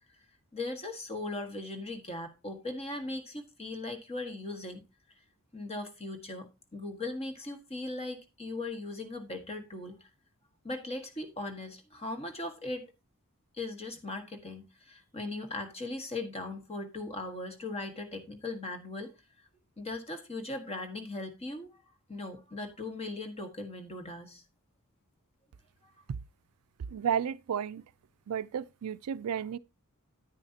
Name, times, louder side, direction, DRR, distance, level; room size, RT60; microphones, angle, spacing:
voice 1, 0.5-4.8 5.5-10.0 10.6-12.9 13.5-19.1 19.8-21.8 22.1-24.4, left 2 dB, 30° left, 1.5 m, -39 dB
voice 2, 26.9-27.8 28.3-29.6, right 8 dB, 80° right, 0.4 m, -32 dB
9.7 x 9.3 x 2.8 m
head